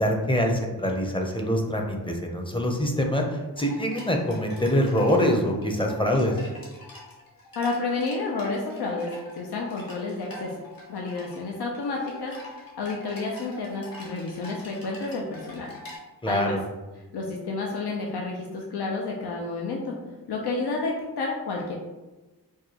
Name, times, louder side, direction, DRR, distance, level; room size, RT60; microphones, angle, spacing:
voice 1, 0.0-6.4 16.2-16.6, equal, 15° left, 2 dB, 0.6 m, -24 dB
sound 1, 3.6-16.0, left 1 dB, 65° left, 1.2 m, -45 dB
voice 2, 7.6-10.5 10.9-12.3 12.8-15.7 16.3-16.6 17.1-20.0 20.3-21.8, left 3 dB, 80° left, -1 dB, 0.6 m, -30 dB
4.6 x 2.3 x 2.8 m, 1.1 s
cardioid pair, 60°, 38 cm